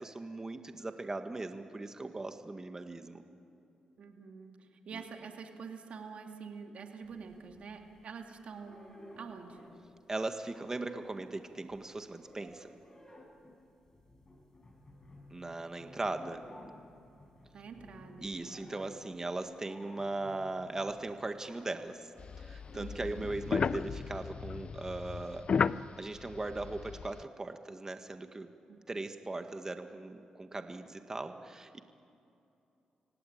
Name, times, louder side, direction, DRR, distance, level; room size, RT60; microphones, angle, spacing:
voice 1, 0.0-3.2 4.9-5.0 10.1-12.7 15.3-16.4 18.2-22.1 22.4-28.5 28.9-31.8, right 2 dB, 25° right, 7 dB, 1.8 m, -39 dB
voice 2, 4.0-9.7 16.2-16.4 17.5-18.9 22.7-23.3 28.7-28.8, right 5 dB, 65° right, 4 dB, 2.5 m, -47 dB
sound 1, 7.0-8.1 8.5-10.0 10.2-22.9 23.3-23.5, left 1 dB, 30° left, 6.1 m, -56 dB
sound 2, 22.2-27.2, left 6 dB, 55° left, 0.5 m, -35 dB
25.0 x 17.5 x 8.9 m, 2.7 s
cardioid pair, 65°, 2 cm